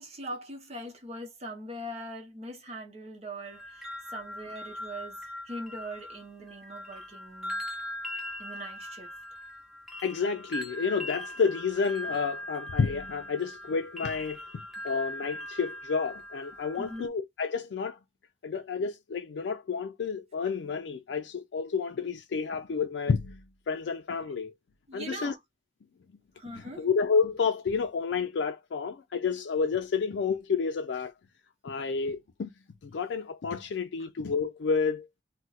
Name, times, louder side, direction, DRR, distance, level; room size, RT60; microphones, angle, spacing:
voice 1, 0.0-5.2 5.5-7.6 8.4-9.1 16.8-17.1 24.9-25.4 26.4-26.9, right 1 dB, 35° right, 0.8 m, -41 dB
sound 1, 3.4-17.1, left 1 dB, ahead, 0.7 m, -40 dB
voice 2, 10.0-14.4 14.8-18.0 18.4-24.5 24.9-25.3 26.5-31.1 31.6-32.5 32.8-35.2, left 5 dB, 80° left, 0.4 m, -30 dB
2.4 x 2.2 x 3.9 m
head